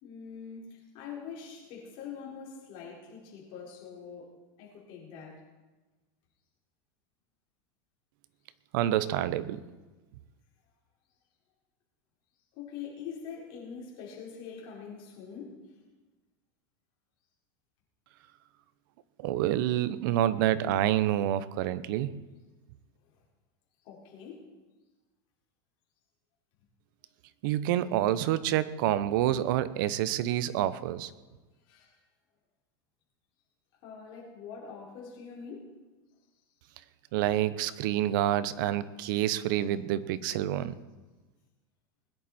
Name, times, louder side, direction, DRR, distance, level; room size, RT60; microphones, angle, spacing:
voice 1, 0.0-4.3 4.6-5.4 12.5-15.6 23.8-24.5 31.7-31.9 33.8-35.7, left 6 dB, 45° left, -3 dB, 4.6 m, -44 dB
voice 2, 8.7-9.6 19.2-22.2 27.4-31.1 37.1-40.7, right 12 dB, 60° right, 15 dB, 0.8 m, -28 dB
20.5 x 10.5 x 4.3 m, 1.2 s
supercardioid pair, 155°, 12 cm